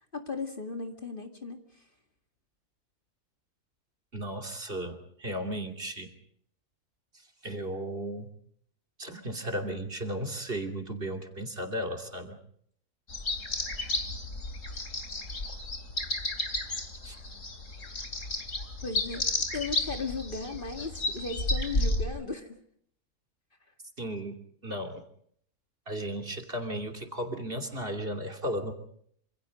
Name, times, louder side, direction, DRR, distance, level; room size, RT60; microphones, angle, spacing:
voice 1, 0.1-1.8 18.8-22.6, left 3 dB, 35° left, 4 dB, 2.2 m, -37 dB
voice 2, 4.1-6.1 7.1-8.3 9.0-12.4 17.0-17.2 24.0-24.4 24.6-25.0 25.9-28.7, right 1 dB, 40° right, 4 dB, 3.0 m, -35 dB
sound 1, 13.1-22.1, left 2 dB, 55° left, 3.5 m, -32 dB
27.0 x 27.0 x 5.2 m, 0.65 s
omnidirectional pair, 1.6 m